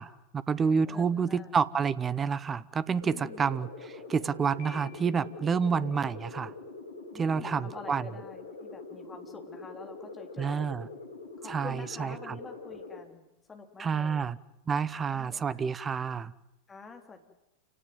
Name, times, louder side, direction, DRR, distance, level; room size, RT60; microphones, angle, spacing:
voice 1, 0.0-6.5 7.1-8.0 10.4-10.9 11.5-12.4 13.8-14.4 14.7-16.3, right 6 dB, 20° right, 0.9 m, -29 dB
voice 2, 0.9-1.5 3.0-3.5 7.1-10.7 11.4-14.3 15.0-15.6 16.7-17.2, left 4 dB, 15° left, 3.4 m, -48 dB
sound 1, 3.0-13.0, left 3 dB, 70° left, 3.8 m, -44 dB
Piano, 4.6-5.6, left 6 dB, 40° left, 7.8 m, -52 dB
28.5 x 18.0 x 9.4 m
figure-of-eight pair, 90°, 0 cm